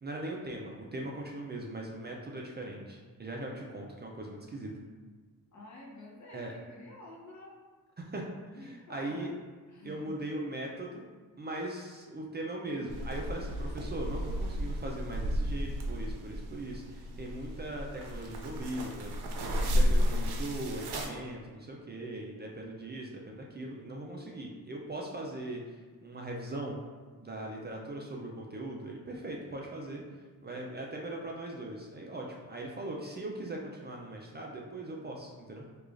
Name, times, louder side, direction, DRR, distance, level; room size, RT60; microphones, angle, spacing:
voice 1, 0.0-4.7 6.3-6.5 8.0-8.6 8.9-9.3 9.8-11.0 11.4-25.6 26.0-26.8 27.2-30.0 30.4-35.6, right 1 dB, 25° right, -1 dB, 0.4 m, -40 dB
voice 2, 5.5-7.6 8.5-9.3 9.7-10.2 19.7-20.2, left 2 dB, 45° left, -2 dB, 0.8 m, -49 dB
sound 1, 12.9-21.1, equal, 85° right, 0.6 m, -32 dB
4.7 x 2.3 x 2.5 m, 1.4 s
cardioid pair, 110°, 39 cm